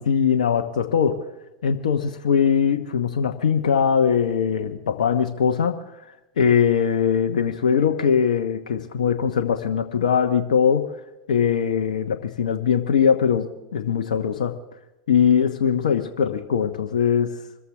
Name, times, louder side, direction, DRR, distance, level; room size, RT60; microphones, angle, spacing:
voice 1, 0.1-1.2 1.6-5.8 6.4-10.9 11.3-14.6 15.1-17.3, left 7 dB, 75° left, 5 dB, 1.2 m, -21 dB
25.5 x 14.0 x 3.5 m, 0.98 s
hypercardioid pair, 95°, 4 cm